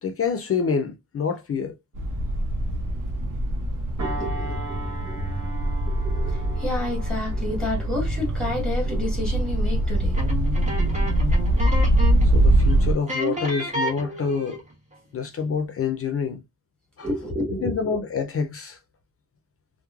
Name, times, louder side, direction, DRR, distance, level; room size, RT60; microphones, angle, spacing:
voice 1, 0.0-1.7 12.2-14.6 15.1-16.4 17.0-17.1 17.6-18.8, left 6 dB, 45° left, 0.4 m, -27 dB
sound 1, 2.0-12.9, right 1 dB, 90° right, 0.6 m, -23 dB
voice 2, 4.0-4.8 5.0-5.2 5.9-10.2 17.0-18.0, left 1 dB, 5° left, 1.2 m, -30 dB
sound 2, 4.0-12.8 13.3-13.5, right 2 dB, 65° right, 1.1 m, -41 dB
sound 3, 10.1-12.3 12.6-12.7 13.1-14.7, right 2 dB, 20° right, 1.0 m, -30 dB
3.0 x 2.0 x 2.3 m
wide cardioid pair, 175°, 31 cm